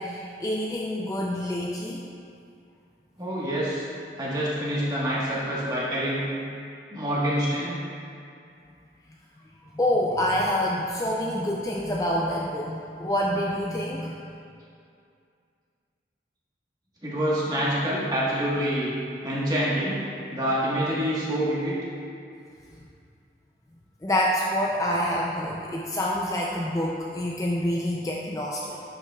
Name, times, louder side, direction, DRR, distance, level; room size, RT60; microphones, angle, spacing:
voice 1, 0.0-2.1 9.7-14.2 24.0-28.8, left 1 dB, 20° left, -2 dB, 0.3 m, -27 dB
voice 2, 3.2-3.9 4.2-6.2 6.9-7.8 17.0-18.9 19.2-20.0 20.3-21.7, equal, 20° right, -7 dB, 1.3 m, -26 dB
10.5 x 5.6 x 2.3 m, 2.4 s
head